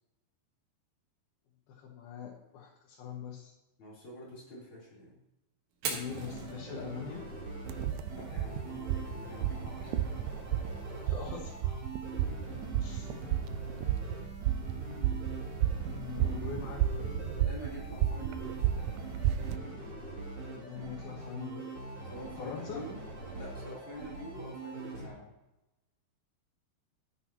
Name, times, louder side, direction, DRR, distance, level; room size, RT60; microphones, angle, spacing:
voice 1, 1.7-3.5 5.9-7.3 11.0-11.8 12.8-13.1 15.8-17.3 20.5-21.6 22.4-22.8, left 7 dB, 85° left, -3 dB, 3.3 m, -42 dB
voice 2, 3.8-5.2 8.1-10.1 17.4-18.7 20.6-20.9 22.1-23.0 23.3-25.4, left 1 dB, 35° left, -6 dB, 4.2 m, -47 dB
Fire, 5.7-13.7, right 5 dB, 70° right, 3.1 m, -47 dB
sound 1, 6.0-25.1, right 2 dB, 40° right, 3.2 m, -43 dB
sound 2, 7.7-19.6, right 11 dB, 85° right, 1.7 m, -33 dB
12.0 x 10.0 x 3.0 m, 0.95 s
omnidirectional pair, 4.2 m